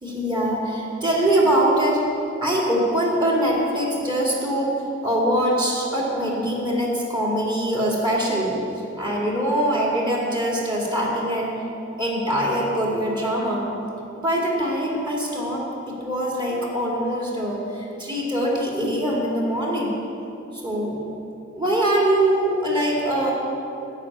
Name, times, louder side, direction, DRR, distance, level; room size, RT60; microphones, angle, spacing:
voice 1, 0.0-2.0 2.4-4.7 5.0-8.6 9.0-11.6 12.0-13.7 14.2-19.9 20.5-21.0 21.5-23.3, right 1 dB, 25° right, -4 dB, 2.1 m, -23 dB
11.0 x 5.0 x 8.5 m, 2.7 s
head